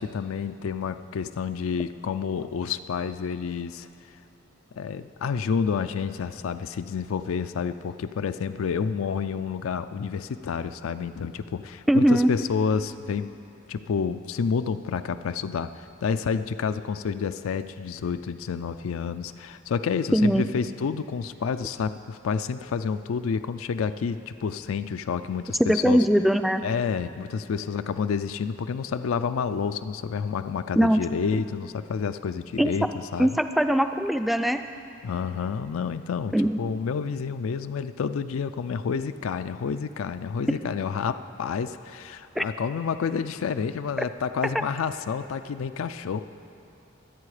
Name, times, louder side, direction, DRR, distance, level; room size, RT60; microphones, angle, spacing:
voice 1, 0.0-3.9 4.8-13.3 13.7-26.1 26.6-32.9 33.1-33.3 35.0-46.2, left 6 dB, 90° left, 10 dB, 0.4 m, -29 dB
voice 2, 11.9-12.3 20.1-20.4 25.6-26.6 30.8-31.0 32.6-32.7 33.2-34.6 36.3-36.6 42.4-42.5, equal, ahead, 8 dB, 0.3 m, -21 dB
23.0 x 8.5 x 4.9 m, 2.7 s
head